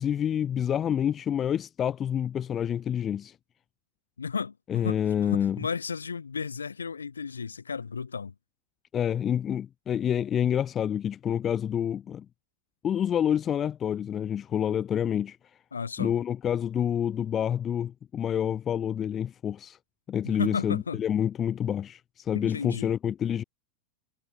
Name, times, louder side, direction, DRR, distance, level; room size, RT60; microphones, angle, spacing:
voice 1, 0.0-3.3 4.7-5.6 8.9-12.2 12.8-15.4 16.0-19.8 20.1-23.4, left 9 dB, 25° left, 2.6 m, -28 dB
voice 2, 4.2-8.3 15.7-16.1 20.2-21.0 22.3-22.9, left 5 dB, 75° left, 5.2 m, -34 dB
figure-of-eight pair, 90°, 0 cm